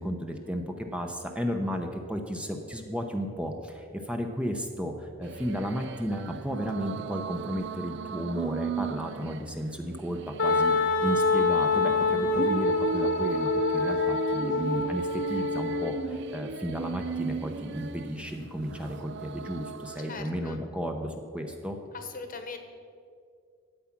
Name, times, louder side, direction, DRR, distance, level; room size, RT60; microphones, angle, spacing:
voice 1, 0.0-21.8, equal, 5° right, 3 dB, 0.7 m, -33 dB
sound 1, 5.2-20.2, right 5 dB, 60° right, 0.4 m, -37 dB
Wind instrument woodwind instrument, 10.4-16.0, left 3 dB, 65° left, 1.2 m, -26 dB
voice 2, 20.1-20.6 21.9-22.6, left 4 dB, 45° left, 6 dB, 1.1 m, -40 dB
12.5 x 8.4 x 5.9 m, 2.3 s
head